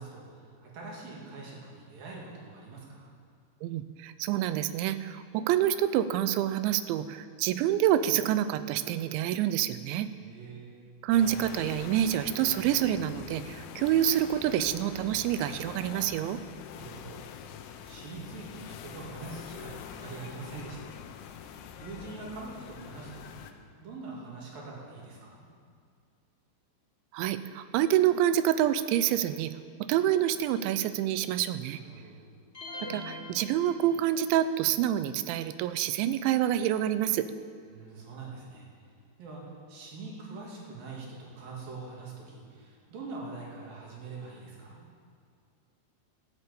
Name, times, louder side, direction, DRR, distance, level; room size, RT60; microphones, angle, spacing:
voice 1, 0.0-3.1 10.1-10.8 16.7-17.2 17.8-20.9 21.8-23.5 23.8-25.5 31.7-32.2 37.6-38.7 39.2-44.9, right 3 dB, 55° right, -3 dB, 4.0 m, -44 dB
voice 2, 3.6-10.1 11.0-16.4 27.1-29.5 29.9-31.8 32.9-37.3, right 11 dB, 90° right, 12 dB, 2.9 m, -27 dB
sound 1, 11.1-23.5, left 9 dB, 90° left, 3.2 m, -44 dB
sound 2, 32.5-34.4, left 1 dB, 15° left, 3.0 m, -42 dB
14.0 x 8.1 x 8.4 m, 2.3 s
omnidirectional pair, 5.2 m